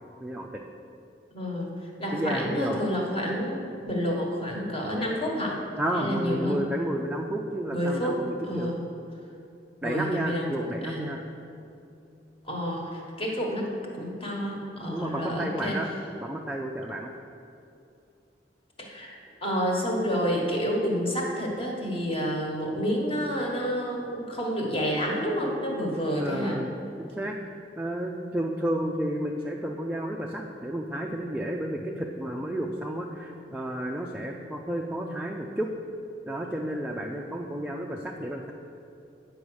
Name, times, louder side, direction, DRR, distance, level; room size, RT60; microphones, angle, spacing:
voice 1, 1.3-5.6 5.9-6.6 7.7-8.8 9.8-11.2 12.5-15.8 18.8-26.6, equal, 30° left, -1 dB, 1.4 m, -29 dB
voice 2, 2.1-2.8 5.8-8.7 9.8-11.2 14.9-15.9 16.2-17.1 26.2-26.7 27.0-27.4 27.8-35.7 36.3-38.5, right 1 dB, 5° right, -1 dB, 0.4 m, -31 dB
8.6 x 5.0 x 6.3 m, 2.6 s
head